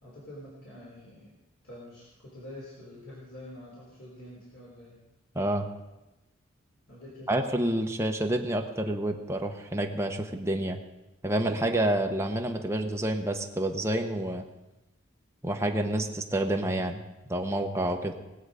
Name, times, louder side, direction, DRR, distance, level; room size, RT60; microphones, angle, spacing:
voice 1, 0.0-1.4 1.6-5.0 6.9-7.3, left 1 dB, 70° left, -7 dB, 3.7 m, -46 dB
voice 2, 5.3-5.6 7.3-10.8 11.2-14.4 15.4-17.0 17.3-18.2, right 1 dB, 15° right, 3 dB, 1.0 m, -28 dB
20.0 x 7.9 x 5.0 m, 1.0 s
head